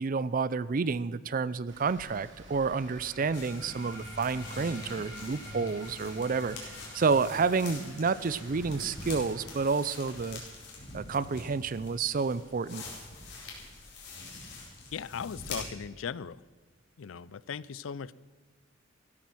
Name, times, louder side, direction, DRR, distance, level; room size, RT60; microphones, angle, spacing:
voice 1, 0.0-10.4 10.9-12.8, right 4 dB, 45° right, 18 dB, 0.5 m, -30 dB
Rain, 1.7-10.0, right 2 dB, 65° right, 3.5 m, -53 dB
sound 1, 2.7-13.8, equal, 20° left, 2.8 m, -48 dB
sound 2, 3.3-15.6, left 3 dB, 55° left, 4.4 m, -45 dB
voice 2, 14.9-16.4 17.0-18.1, left 7 dB, 75° left, 20 dB, 0.4 m, -38 dB
14.5 x 13.0 x 6.1 m, 1.4 s
head